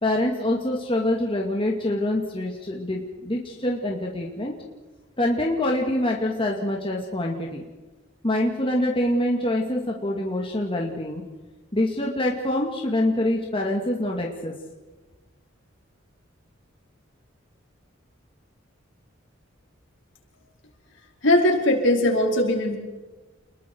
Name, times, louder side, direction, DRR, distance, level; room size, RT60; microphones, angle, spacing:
voice 1, 0.0-4.5 5.2-7.6 8.2-11.2 11.7-14.5, left 1 dB, 25° left, 0 dB, 2.4 m, -25 dB
voice 2, 21.2-22.8, left 1 dB, 65° left, 1 dB, 4.8 m, -20 dB
29.5 x 21.5 x 4.7 m, 1.2 s
head